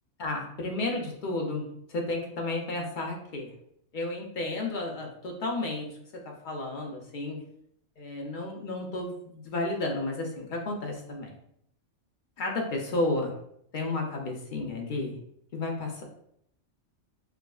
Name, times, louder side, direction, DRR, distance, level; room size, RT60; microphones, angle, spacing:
voice 1, 0.2-1.6 1.9-3.5 3.9-5.9 6.1-7.4 8.0-11.3 12.4-13.3 13.7-15.2 15.5-16.0, left 2 dB, 55° left, 0 dB, 0.6 m, -32 dB
4.7 x 2.0 x 2.3 m, 0.72 s
omnidirectional pair, 1.4 m